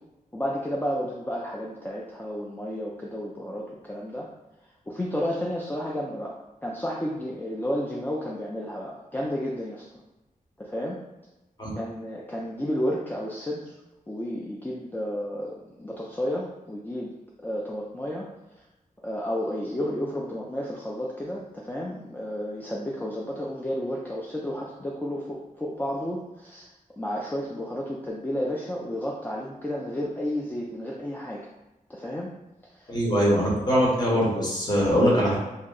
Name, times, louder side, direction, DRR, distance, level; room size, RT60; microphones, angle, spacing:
voice 1, 0.3-4.3 4.9-6.3 6.6-9.9 10.6-11.0 11.8-13.8 14.1-18.3 19.0-26.7 27.0-31.5 31.9-32.3 32.7-33.0, equal, 15° left, -4 dB, 0.4 m, -32 dB
voice 2, 32.9-35.3, equal, 30° left, -5 dB, 1.0 m, -22 dB
2.7 x 2.1 x 3.8 m, 1.0 s
wide cardioid pair, 110°, 15 cm